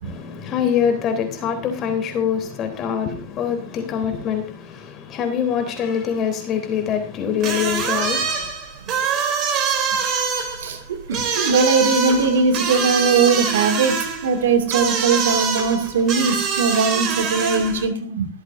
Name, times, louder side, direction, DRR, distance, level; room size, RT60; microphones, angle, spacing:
voice 1, 0.0-8.5, left 8 dB, 30° left, 3.5 m, -24 dB
sound 1, 7.4-17.9, right 5 dB, 35° right, 3.4 m, -24 dB
voice 2, 10.6-18.3, right 5 dB, 75° right, 2.4 m, -20 dB
23.0 x 8.0 x 2.7 m
hypercardioid pair, 120°, 0 cm